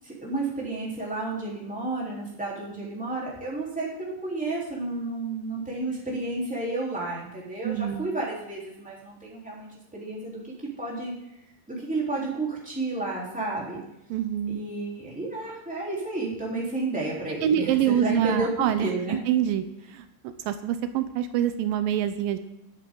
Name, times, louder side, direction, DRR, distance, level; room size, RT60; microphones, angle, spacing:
voice 1, 0.0-10.4 10.8-11.1 11.7-13.8 14.5-19.2, right 2 dB, ahead, -5 dB, 3.1 m, -31 dB
voice 2, 7.6-8.1 14.1-14.6 17.4-18.9 19.3-19.6 19.9-22.4, right 10 dB, 85° right, 10 dB, 2.4 m, -25 dB
22.0 x 8.4 x 3.8 m, 0.86 s
omnidirectional pair, 4.0 m